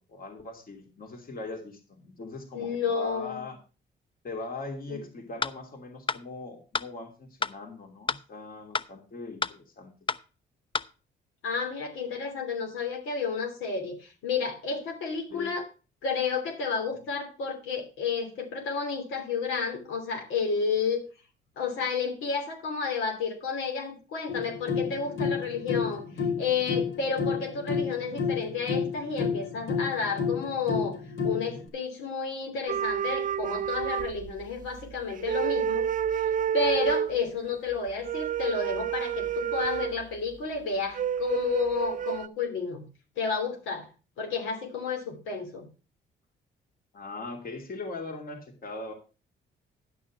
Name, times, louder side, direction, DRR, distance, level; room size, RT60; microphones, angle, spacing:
voice 1, 0.0-3.6 4.2-9.9 15.3-15.5 46.9-48.9, left 3 dB, 45° left, 3 dB, 2.9 m, -40 dB
voice 2, 2.5-3.4 4.9-5.0 11.4-15.7 16.0-21.0 21.6-26.0 26.4-31.0 31.2-35.9 36.2-42.8 43.2-43.9 44.2-45.7, left 5 dB, 90° left, 2 dB, 3.2 m, -31 dB
sound 1, 5.4-5.5 6.1-6.2 6.7-6.9 7.4-7.5 8.1-8.2 8.7-8.9 9.4-9.5 10.1-10.2 10.7-10.9, left 5 dB, 25° left, 0.5 m, -29 dB
sound 2, 24.3-31.6, left 6 dB, 75° left, 3.8 m, -31 dB
sound 3, 32.7-34.8 35.1-37.2 38.0-40.0 41.0-42.3, right 9 dB, 40° right, 0.5 m, -29 dB
11.0 x 6.1 x 6.0 m, 0.33 s
cardioid pair, 90°, 20 cm